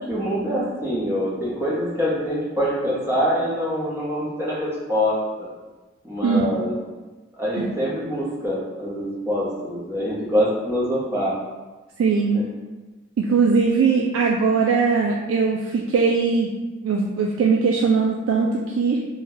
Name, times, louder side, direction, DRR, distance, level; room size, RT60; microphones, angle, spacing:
voice 1, 0.1-5.5 6.0-6.8 7.4-11.3 12.3-12.4, equal, 10° right, -7 dB, 0.7 m, -25 dB
voice 2, 12.0-12.4 13.2-16.5 16.8-18.5 18.8-19.0, right 5 dB, 90° right, -1 dB, 0.3 m, -20 dB
2.7 x 2.1 x 3.8 m, 1.2 s
head